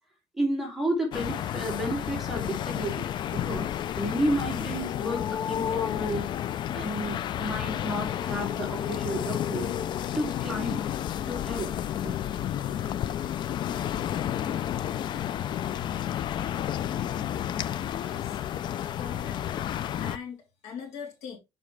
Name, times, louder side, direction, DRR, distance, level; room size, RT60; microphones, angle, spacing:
voice 1, 0.4-3.7 4.0-6.3 6.7-9.7 10.1-10.8 11.3-11.7, right 1 dB, 5° right, 2.6 m, -32 dB
sound 1, 1.1-20.2, left 10 dB, 45° left, 0.4 m, -31 dB
voice 2, 18.0-18.4 18.9-19.4 20.0-21.4, left 6 dB, 75° left, 3.2 m, -41 dB
7.2 x 5.4 x 3.3 m
cardioid pair, 160°, 11 cm